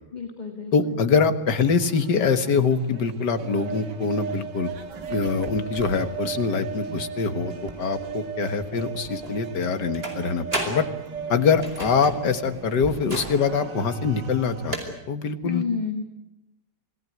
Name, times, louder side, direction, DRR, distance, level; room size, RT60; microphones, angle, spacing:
voice 1, 0.1-1.0 15.4-16.0, left 5 dB, 25° left, 5 dB, 2.2 m, -30 dB
voice 2, 0.7-4.7 5.1-10.9 11.3-15.6, left 5 dB, 75° left, 9 dB, 2.2 m, -24 dB
sound 1, 1.6-14.9, right 6 dB, 80° right, 2.4 m, -36 dB
sound 2, 4.6-14.8, right 1 dB, 35° right, 5.1 m, -37 dB
27.0 x 18.5 x 9.4 m, 0.93 s
omnidirectional pair, 1.8 m